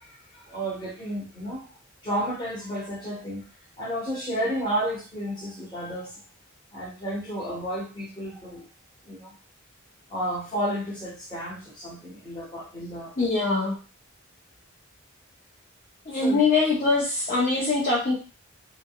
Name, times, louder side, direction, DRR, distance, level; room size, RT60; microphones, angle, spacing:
voice 1, 0.0-1.7 2.0-3.4 3.8-6.2 6.7-8.6 9.1-9.3 10.1-13.1 16.2-16.4, equal, 25° left, -4 dB, 1.2 m, -32 dB
voice 2, 13.2-13.7 16.1-18.1, left 3 dB, 40° left, -5 dB, 0.7 m, -23 dB
3.7 x 2.2 x 2.3 m, 0.34 s
head